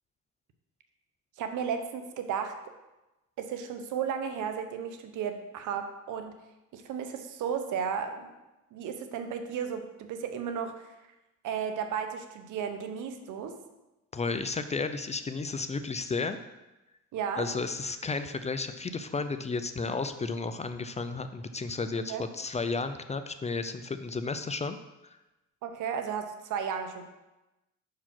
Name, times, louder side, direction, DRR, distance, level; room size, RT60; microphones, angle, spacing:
voice 1, 1.4-2.6 3.4-6.4 6.7-8.3 8.7-11.0 11.4-13.6 17.1-17.5 22.1-22.2 25.6-27.0, right 7 dB, 85° right, 7 dB, 0.8 m, -34 dB
voice 2, 14.1-16.4 17.4-24.8, left 4 dB, 20° left, 10 dB, 0.5 m, -33 dB
5.7 x 4.8 x 5.8 m, 1.0 s
cardioid pair, 90°, 30 cm